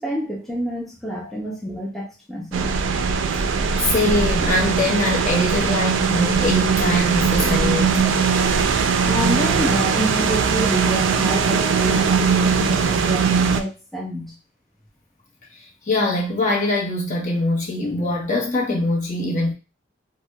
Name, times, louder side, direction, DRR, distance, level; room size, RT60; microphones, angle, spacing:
voice 1, 0.0-2.8 9.0-14.3, equal, ahead, 0.5 m, -28 dB
sound 1, 2.5-13.6, right 5 dB, 85° right, 0.4 m, -20 dB
voice 2, 3.8-8.0 15.9-19.5, left 2 dB, 40° left, 0.9 m, -22 dB
4.2 x 2.1 x 2.2 m
head